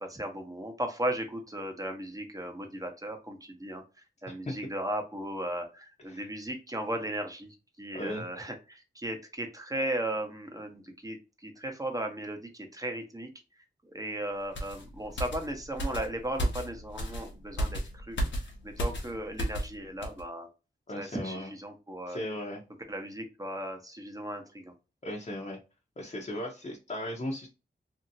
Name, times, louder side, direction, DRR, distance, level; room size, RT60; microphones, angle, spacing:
voice 1, 0.0-3.8 4.2-7.5 7.8-13.3 13.8-18.3 18.6-20.5 20.9-22.2 22.9-24.7, right 1 dB, 20° right, 4 dB, 0.9 m, -36 dB
voice 2, 7.9-8.2 20.9-21.5 22.1-22.6 25.0-25.6 26.0-27.5, left 1 dB, 35° left, -2 dB, 0.8 m, -36 dB
sound 1, 14.5-19.7 20.0-20.2, equal, 90° left, 0.8 m, -34 dB
2.8 x 2.7 x 2.6 m, 0.30 s
wide cardioid pair, 70°, 19 cm